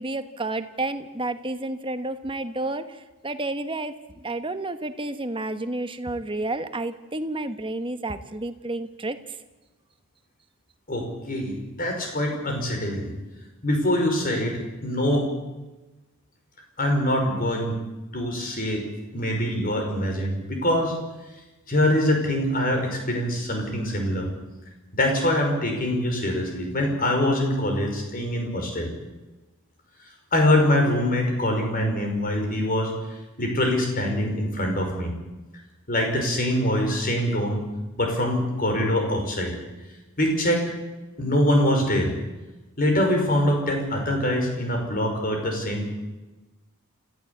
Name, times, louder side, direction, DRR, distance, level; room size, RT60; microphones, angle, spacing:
voice 1, 0.0-3.0 3.2-9.4, right 2 dB, 25° right, 9 dB, 1.2 m, -30 dB
voice 2, 10.9-13.1 13.6-15.3 16.8-17.8 18.1-18.8 19.1-21.0 21.7-24.3 24.9-28.9 30.3-32.9 33.4-35.1 35.9-37.6 38.0-39.6 40.2-40.7 41.2-42.1 42.8-45.9, left 1 dB, 40° left, 3 dB, 5.5 m, -24 dB
26.5 x 15.0 x 8.5 m, 1.1 s
head